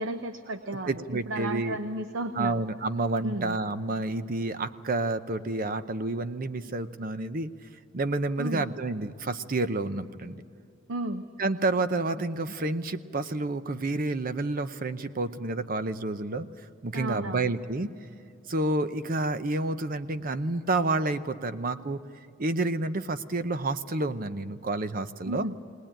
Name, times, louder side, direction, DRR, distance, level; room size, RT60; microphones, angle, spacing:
voice 1, 0.0-2.6 3.2-3.6 8.4-8.7 10.9-11.2 16.9-17.5 25.3-25.6, right 1 dB, 75° right, 8 dB, 0.9 m, -33 dB
voice 2, 0.9-1.8 2.3-7.5 7.9-10.4 11.4-16.5 16.8-17.9 18.5-22.0 22.4-25.5, right 2 dB, 45° right, 11 dB, 0.8 m, -29 dB
20.5 x 19.0 x 9.0 m, 2.6 s
head